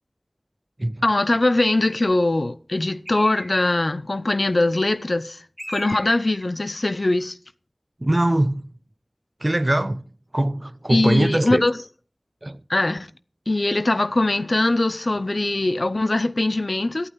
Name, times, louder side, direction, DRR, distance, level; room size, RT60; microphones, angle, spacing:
voice 1, 1.0-5.4 5.7-7.4 10.9-11.8 12.7-13.1 13.5-17.1, left 2 dB, 70° left, 0.7 m, -21 dB
Bird, 3.1-3.9 5.6-6.5, equal, 5° right, 1.8 m, -38 dB
voice 2, 8.0-8.7 9.4-11.6 12.4-12.6, right 1 dB, 40° right, 0.8 m, -22 dB
14.0 x 8.9 x 4.6 m
wide cardioid pair, 45°, 0 cm